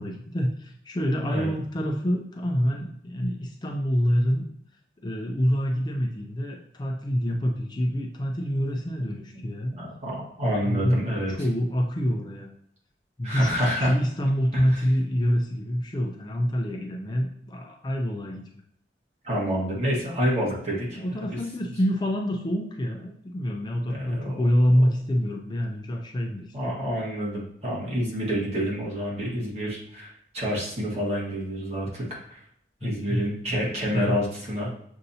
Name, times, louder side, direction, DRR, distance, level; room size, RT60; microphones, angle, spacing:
voice 1, 0.0-4.5 5.0-9.7 10.6-12.5 13.2-18.4 21.0-26.8 32.8-33.6 33.9-34.2, equal, 25° left, 0 dB, 0.5 m, -26 dB
voice 2, 1.2-1.5 9.7-11.3 13.2-13.9 14.5-14.8 19.2-21.0 23.9-24.5 24.8-24.9 26.5-32.4 32.8-34.7, equal, 35° right, -4 dB, 1.5 m, -28 dB
6.6 x 2.6 x 2.7 m, 0.69 s
head